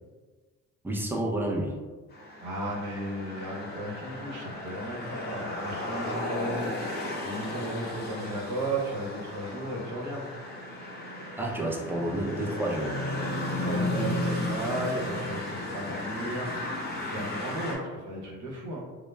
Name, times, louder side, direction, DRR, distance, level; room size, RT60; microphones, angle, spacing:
voice 1, 0.8-1.7 11.4-12.9, right 1 dB, 5° right, -1 dB, 0.4 m, -30 dB
sound 1, 2.1-17.8, left 1 dB, 35° left, 0.7 m, -34 dB
voice 2, 2.4-6.8 7.2-10.2 13.5-16.7 17.0-18.8, right 1 dB, 75° right, -3 dB, 0.8 m, -34 dB
2.2 x 2.0 x 3.1 m, 1.4 s
cardioid pair, 90°, 30 cm